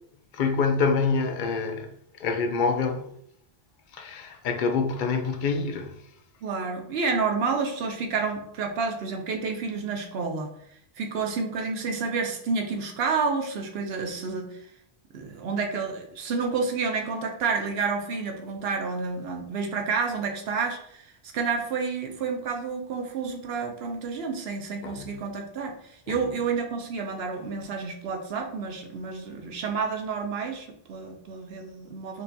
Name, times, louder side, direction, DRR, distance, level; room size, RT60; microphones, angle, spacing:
voice 1, 0.3-1.9 2.2-3.1 3.9-6.1 24.8-25.2 26.1-26.2, left 4 dB, 60° left, 0.6 m, -26 dB
voice 2, 6.4-10.5 11.0-14.6 15.1-32.2, right 5 dB, 80° right, 0.8 m, -30 dB
4.9 x 2.7 x 2.2 m
omnidirectional pair, 1.0 m